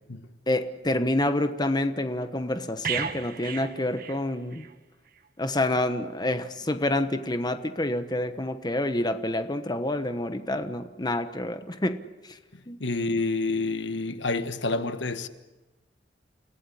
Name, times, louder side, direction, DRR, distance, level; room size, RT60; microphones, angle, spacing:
voice 1, 0.5-4.6 5.4-12.4 12.7-12.8, left 1 dB, 25° left, 1.2 m, -28 dB
sound 1, 2.8-4.7 5.1-5.3, right 7 dB, 55° right, 1.7 m, -34 dB
voice 2, 12.8-15.3, left 3 dB, 80° left, 1.4 m, -28 dB
29.0 x 16.0 x 9.9 m
head